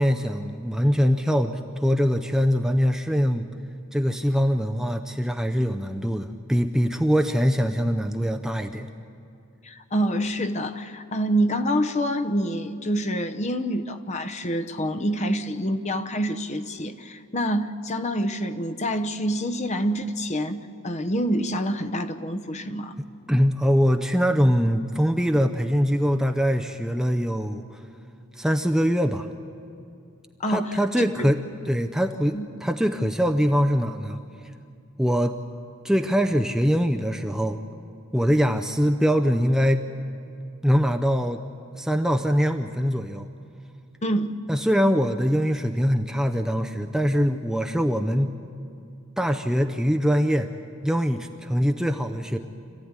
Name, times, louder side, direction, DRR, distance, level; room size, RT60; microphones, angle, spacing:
voice 1, 0.0-3.5 3.9-8.9 23.3-27.8 28.4-29.3 30.5-31.4 31.7-34.2 35.0-35.3 35.8-37.6 38.1-39.8 40.6-41.4 41.7-43.3 44.5-48.4 49.2-50.5 50.8-52.4, equal, ahead, 5 dB, 0.6 m, -23 dB
voice 2, 9.6-22.9 30.4-31.3 32.3-32.5 44.0-44.4, equal, 30° left, 8 dB, 0.9 m, -27 dB
26.0 x 15.0 x 9.6 m, 2.5 s
head